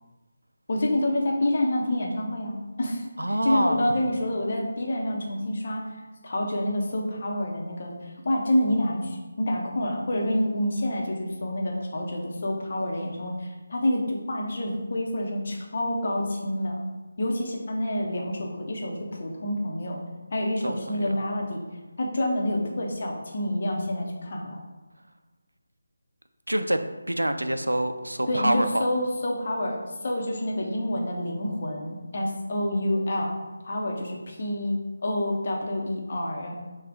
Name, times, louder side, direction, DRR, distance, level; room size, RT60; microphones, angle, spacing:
voice 1, 0.7-5.9 6.2-16.8 17.2-20.0 20.3-21.6 22.0-24.6 28.3-33.3 33.6-36.5, left 1 dB, 45° left, -1 dB, 0.9 m, -28 dB
voice 2, 3.2-3.8 20.6-21.2 26.5-26.8 27.1-28.8, right 1 dB, 80° right, 8 dB, 0.4 m, -26 dB
5.8 x 2.4 x 3.6 m, 1.2 s
figure-of-eight pair, 155°, 0 cm